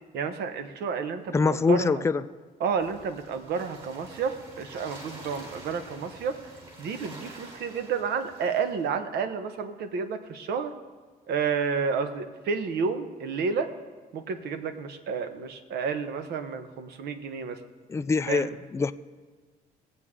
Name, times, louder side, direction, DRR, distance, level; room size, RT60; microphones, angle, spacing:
voice 1, 0.1-2.0 2.6-6.4 6.8-10.7 11.3-13.7 14.1-17.6 18.3-18.5, right 5 dB, 70° right, 9 dB, 1.1 m, -30 dB
voice 2, 1.3-2.2 17.9-18.9, left 4 dB, 15° left, 11 dB, 0.4 m, -24 dB
sound 1, 2.8-8.9, right 1 dB, 35° right, 4.0 m, -47 dB
19.5 x 8.1 x 3.7 m, 1.5 s
cardioid pair, 110°, 17 cm